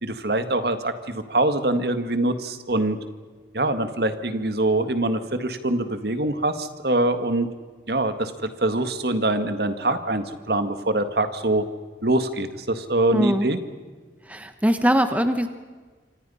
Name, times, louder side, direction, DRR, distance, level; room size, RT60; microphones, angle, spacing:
voice 1, 0.0-3.0 3.5-7.5 7.9-11.6 12.0-13.6, right 2 dB, 60° right, 9 dB, 1.8 m, -24 dB
voice 2, 13.1-13.5 14.2-15.5, equal, 10° right, 9 dB, 1.0 m, -21 dB
28.0 x 25.5 x 5.6 m, 1.4 s
head